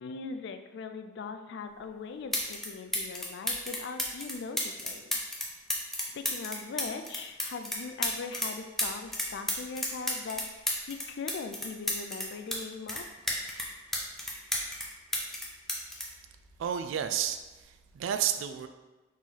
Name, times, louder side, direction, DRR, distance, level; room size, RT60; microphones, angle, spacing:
voice 1, 0.0-5.2 6.1-10.4 10.9-13.0, left 4 dB, 60° left, 8 dB, 0.3 m, -40 dB
sound 1, 1.8-1.9 2.3-2.7 2.9-8.5 8.8-12.6 12.9-14.9 15.1-17.0 17.9-18.1, left 1 dB, ahead, 0.6 m, -32 dB
voice 2, 16.6-18.7, right 9 dB, 75° right, 9 dB, 0.3 m, -31 dB
4.1 x 3.0 x 3.8 m, 1.1 s
head